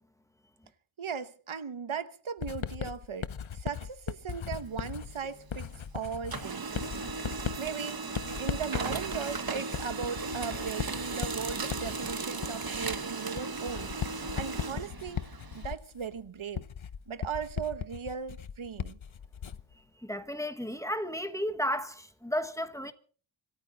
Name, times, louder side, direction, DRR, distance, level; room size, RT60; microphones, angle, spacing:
voice 1, 1.0-6.7 7.6-8.0 8.4-16.6 17.1-19.0, right 6 dB, 80° right, 1.1 m, -38 dB
Writing, 2.4-19.8, left 8 dB, 75° left, 0.9 m, -38 dB
Printer, 4.6-5.9 6.2-15.7, right 4 dB, 50° right, 1.1 m, -36 dB
voice 2, 20.0-22.9, equal, 5° left, 1.3 m, -33 dB
26.0 x 13.5 x 4.0 m
wide cardioid pair, 80°, 48 cm